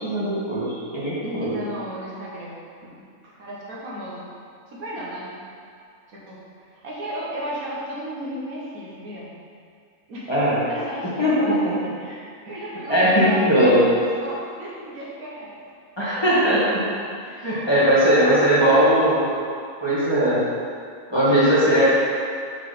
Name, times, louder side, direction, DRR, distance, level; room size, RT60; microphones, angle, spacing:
voice 1, 0.0-1.6 10.3-10.6 11.2-11.3 12.9-13.8 16.0-16.8 17.4-19.3 19.8-20.4 21.1-21.8, equal, 20° left, -10 dB, 1.4 m, -19 dB
voice 2, 1.2-4.3 4.7-5.3 6.1-9.3 10.1-10.3 10.7-13.9 14.2-15.6 17.3-18.9, equal, 70° right, -6 dB, 1.7 m, -34 dB
5.6 x 4.6 x 5.1 m, 2.3 s
omnidirectional pair, 1.6 m